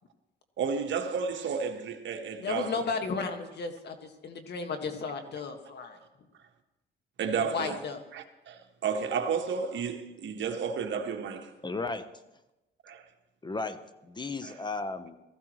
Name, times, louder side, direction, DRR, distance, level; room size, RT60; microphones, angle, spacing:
voice 1, 0.6-2.9 7.2-7.8 8.1-11.5 12.8-13.1 14.4-14.5, right 6 dB, 65° right, 1.5 m, -32 dB
voice 2, 2.4-6.0 7.5-8.0, left 4 dB, 60° left, 1.8 m, -34 dB
voice 3, 11.6-12.1 13.4-15.2, left 3 dB, 20° left, 0.9 m, -35 dB
19.0 x 14.5 x 3.2 m
cardioid pair, 90°, 20 cm